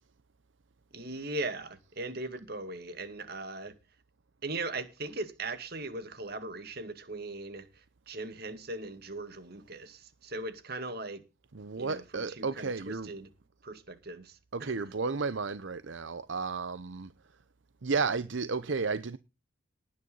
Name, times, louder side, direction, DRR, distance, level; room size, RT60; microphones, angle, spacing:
voice 1, 0.9-3.7 4.4-11.2 11.8-13.3 13.6-14.8, right 2 dB, 50° right, 2.1 m, -39 dB
voice 2, 11.5-13.1 14.5-17.1 17.8-19.2, right 4 dB, 75° right, 0.7 m, -33 dB
19.0 x 9.6 x 4.0 m
head